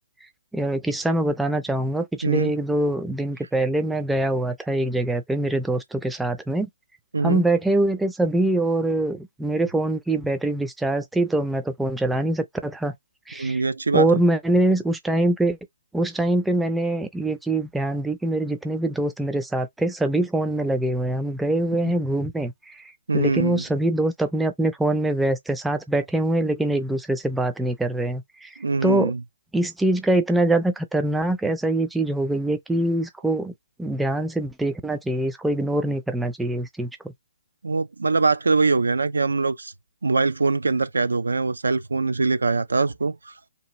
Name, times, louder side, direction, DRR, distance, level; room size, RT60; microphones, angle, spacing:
voice 1, 0.5-6.7 7.2-12.9 13.3-13.6 13.9-15.6 15.9-22.8 23.1-28.5 28.8-29.1 29.5-33.5 33.8-37.1, right 1 dB, 5° right, 0.4 m, -24 dB
voice 2, 2.2-2.5 7.1-7.4 13.4-14.2 23.1-23.6 28.6-29.2 37.6-39.7 40.0-43.3, right 3 dB, 90° right, 0.4 m, -23 dB
2.9 x 2.3 x 3.0 m
hypercardioid pair, 150°, 0 cm